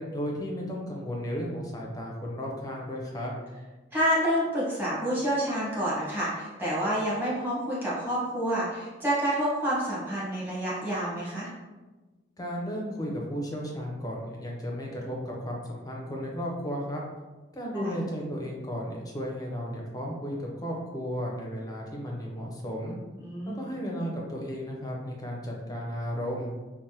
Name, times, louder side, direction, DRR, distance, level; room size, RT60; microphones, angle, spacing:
voice 1, 0.0-3.3 12.4-17.0 17.5-23.0 23.5-26.5, equal, 20° left, -1 dB, 0.5 m, -34 dB
voice 2, 3.9-11.5 17.7-18.0 23.2-23.7, equal, 10° right, -8 dB, 1.0 m, -28 dB
3.3 x 2.0 x 2.7 m, 1.2 s
head